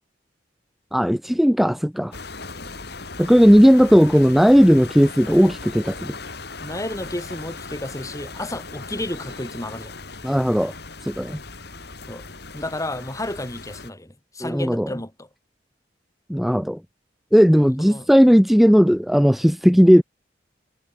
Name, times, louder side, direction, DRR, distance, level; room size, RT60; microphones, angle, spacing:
voice 1, 0.9-2.1 3.2-6.1 10.2-10.7 11.0-11.4 14.4-14.9 16.3-16.8 17.3-20.0, equal, ahead, 0.5 m, -16 dB
sound 1, 2.1-13.9, left 3 dB, 65° left, 3.7 m, -38 dB
voice 2, 6.6-9.9 12.1-12.3 12.5-15.3 17.6-18.1, left 1 dB, 20° left, 3.7 m, -32 dB
head